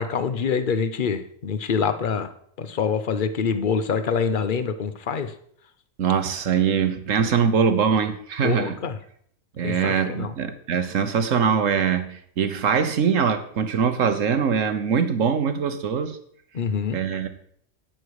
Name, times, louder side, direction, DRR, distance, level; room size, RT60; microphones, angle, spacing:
voice 1, 0.0-2.3 2.6-5.3 8.4-9.0 9.6-10.3 16.5-17.0, left 6 dB, 40° left, 11 dB, 0.9 m, -25 dB
voice 2, 6.0-8.8 9.6-16.2 16.9-17.3, right 6 dB, 65° right, 10 dB, 1.4 m, -22 dB
11.5 x 8.7 x 4.8 m, 0.64 s
omnidirectional pair, 1.5 m